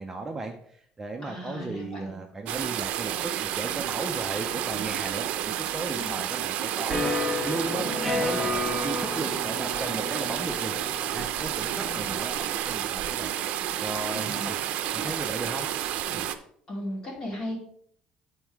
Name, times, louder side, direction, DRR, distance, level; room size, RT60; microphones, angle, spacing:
voice 1, 0.0-10.7 11.1-12.4 12.7-13.4 13.8-14.6 14.9-15.7 16.1-16.3, right 3 dB, 15° right, 2 dB, 0.6 m, -36 dB
voice 2, 1.2-2.2 6.0-6.1 7.8-8.2 11.7-12.1 14.1-14.5 16.7-17.6, left 1 dB, 30° left, -2 dB, 2.5 m, -37 dB
sound 1, 2.5-16.3, right 11 dB, 65° right, 0.6 m, -30 dB
sound 2, 6.9-12.5, left 2 dB, 10° left, 1.0 m, -32 dB
9.1 x 4.5 x 4.6 m, 0.65 s
cardioid pair, 165°, 2 cm